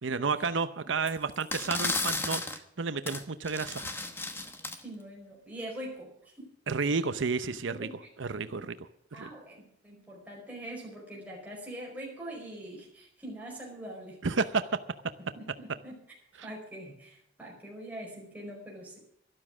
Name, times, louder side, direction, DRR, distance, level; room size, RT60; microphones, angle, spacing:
voice 1, 0.0-3.9 6.7-7.9 8.2-8.8 9.1-9.3 14.2-14.8 16.4-16.5, right 4 dB, 85° right, 12 dB, 0.7 m, -31 dB
sound 1, 1.1-1.2 1.4-2.6 3.1-3.2 3.5-4.8, left 3 dB, 10° left, 1.0 m, -33 dB
voice 2, 4.8-6.5 6.8-7.3 7.5-8.6 9.1-14.2 15.2-16.0 16.4-19.0, right 1 dB, 10° right, -2 dB, 5.1 m, -44 dB
12.5 x 12.0 x 6.2 m, 0.73 s
head